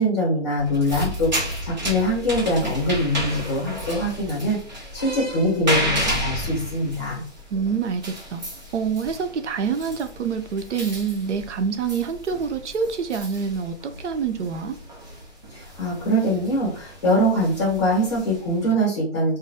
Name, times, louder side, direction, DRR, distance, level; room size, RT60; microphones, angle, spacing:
voice 1, 0.0-4.6 4.9-7.2 15.5-19.4, equal, 25° left, -4 dB, 1.0 m, -23 dB
sound 1, 0.6-18.7, right 1 dB, 40° right, 0.7 m, -32 dB
voice 2, 7.5-8.4 8.7-14.8, right 6 dB, 80° right, 8 dB, 0.5 m, -26 dB
2.2 x 2.1 x 2.6 m, 0.43 s
figure-of-eight pair, 165°, 35 cm